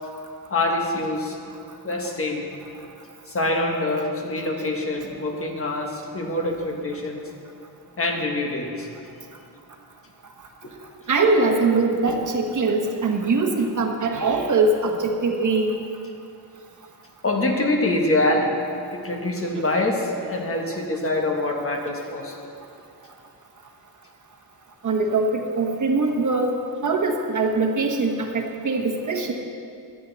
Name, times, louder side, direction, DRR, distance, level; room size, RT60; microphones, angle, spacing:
voice 1, 0.5-1.4 1.8-2.4 3.3-7.2 8.0-8.9 10.6-10.7 17.2-18.6 18.9-22.4, left 2 dB, 35° left, 1 dB, 1.4 m, -25 dB
voice 2, 11.1-15.7 24.8-26.5 26.8-29.3, right 3 dB, 45° right, 2 dB, 1.3 m, -22 dB
17.5 x 12.0 x 4.0 m, 2.5 s
wide cardioid pair, 175°, 40 cm